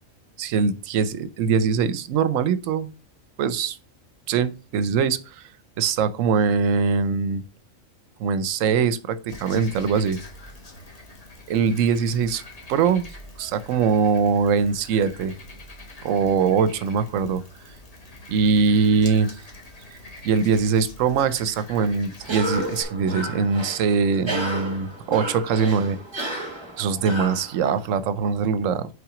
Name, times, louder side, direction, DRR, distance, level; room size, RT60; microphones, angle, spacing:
voice 1, 0.4-2.9 3.4-3.8 4.3-5.4 5.8-7.4 8.2-10.2 11.5-12.4 12.7-13.0 13.4-15.3 16.0-17.4 18.3-19.3 20.2-26.0 26.8-28.9, right 6 dB, 75° right, 1.0 m, -22 dB
Frog, 9.3-22.8, left 1 dB, 30° left, 1.4 m, -44 dB
Cough, 22.2-28.0, right 1 dB, 20° right, 1.4 m, -32 dB
5.9 x 3.9 x 4.9 m
omnidirectional pair, 1.4 m